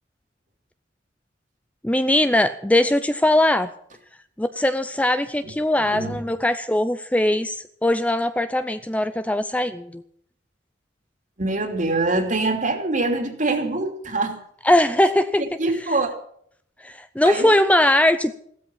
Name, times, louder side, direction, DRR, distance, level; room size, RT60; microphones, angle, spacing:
voice 1, 1.8-3.7 4.4-10.0 14.6-15.4 16.8-18.3, left 1 dB, 10° left, 11 dB, 0.6 m, -20 dB
voice 2, 5.8-6.2 11.4-14.4 15.6-16.1 17.2-17.5, right 2 dB, 45° right, 6 dB, 2.9 m, -24 dB
16.0 x 13.0 x 5.7 m, 0.65 s
head